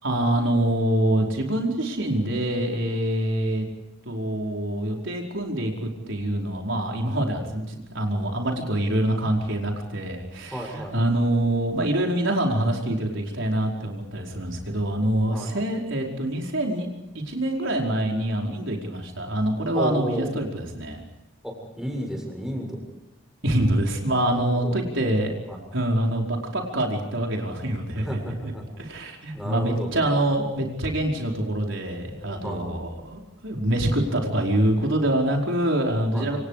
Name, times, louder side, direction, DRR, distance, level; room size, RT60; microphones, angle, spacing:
voice 1, 0.0-3.7 4.0-16.9 17.1-21.0 23.4-25.3 25.7-36.4, right 1 dB, 65° right, 1 dB, 5.0 m, -25 dB
voice 2, 10.5-10.9 15.3-15.5 19.7-20.3 21.4-22.8 24.5-24.7 25.5-25.6 28.0-28.6 29.3-29.9 32.4-32.6 36.1-36.4, equal, 5° right, 1 dB, 7.2 m, -32 dB
28.0 x 27.5 x 5.0 m, 0.96 s
head